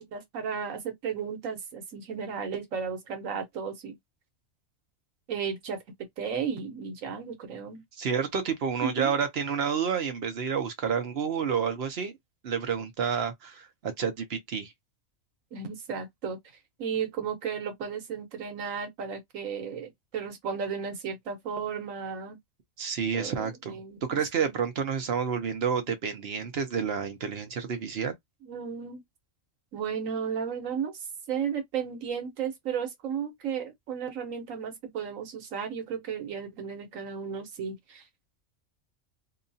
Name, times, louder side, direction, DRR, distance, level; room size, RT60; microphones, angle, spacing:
voice 1, 0.0-4.0 5.3-5.8 6.2-7.8 8.8-9.1 15.5-16.4 16.8-22.4 23.1-24.5 28.4-29.0 29.7-31.0 31.3-38.0, right 7 dB, 85° right, 1.3 m, -34 dB
voice 2, 8.0-12.1 12.4-14.7 22.8-28.1, right 7 dB, 55° right, 0.9 m, -29 dB
2.8 x 2.3 x 2.6 m
omnidirectional pair, 1.4 m